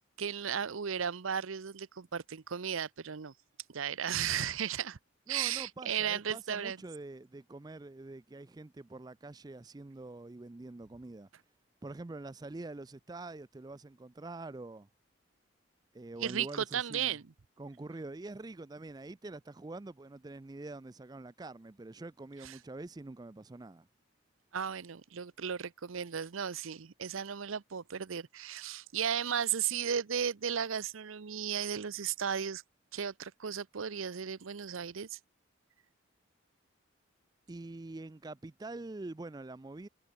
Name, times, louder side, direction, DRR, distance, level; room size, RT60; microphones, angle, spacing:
voice 1, 0.0-3.3 3.7-5.0 5.3-6.8 16.2-17.2 22.4-22.5 24.5-32.6 32.9-35.2, right 8 dB, 80° right, 0.7 m, -35 dB
voice 2, 5.3-11.3 11.8-14.9 15.9-17.2 17.6-23.9 37.5-39.9, right 2 dB, 20° right, 0.4 m, -45 dB
head